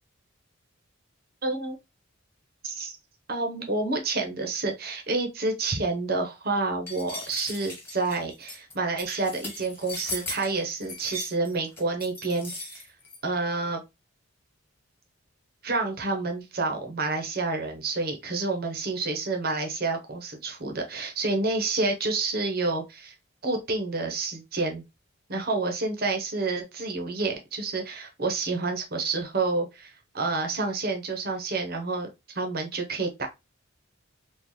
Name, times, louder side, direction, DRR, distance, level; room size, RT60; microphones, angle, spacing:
voice 1, 1.4-1.8 2.6-2.9 3.3-12.9 13.2-13.8 15.6-23.1 23.4-24.8 25.3-33.3, right 3 dB, 45° right, 0.8 m, -29 dB
sound 1, 6.9-13.2, left 1 dB, 10° left, 1.4 m, -38 dB
3.7 x 2.4 x 3.0 m
head